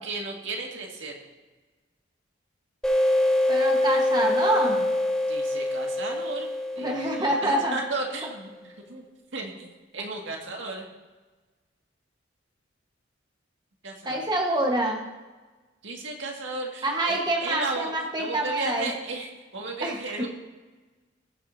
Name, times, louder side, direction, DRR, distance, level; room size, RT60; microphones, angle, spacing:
voice 1, 0.0-1.1 5.3-6.5 6.7-9.1 9.3-10.9 13.8-14.3 15.8-17.9 18.2-20.3, right 3 dB, 75° right, 0 dB, 1.9 m, -34 dB
sound 1, 2.8-8.2, left 1 dB, 5° left, 1.8 m, -25 dB
voice 2, 3.5-4.9 6.8-7.7 14.0-15.0 16.8-18.9 19.8-20.0, right 1 dB, 20° right, 0 dB, 1.3 m, -26 dB
19.5 x 7.6 x 2.7 m, 1.3 s
head